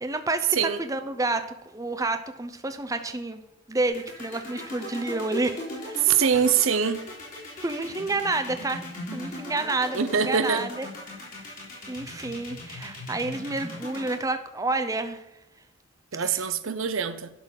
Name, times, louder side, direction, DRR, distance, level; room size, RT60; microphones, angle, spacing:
voice 1, 0.0-3.4 3.7-6.0 7.6-8.8 9.1-10.9 11.9-15.2 16.2-16.5, right 2 dB, 15° right, 8 dB, 0.6 m, -29 dB
sound 1, 3.8-14.1, left 1 dB, 40° left, 3.1 m, -38 dB
voice 2, 6.0-7.0 9.9-10.6 16.1-17.3, right 7 dB, 75° right, 12 dB, 0.7 m, -23 dB
11.5 x 4.0 x 6.4 m, 0.86 s
head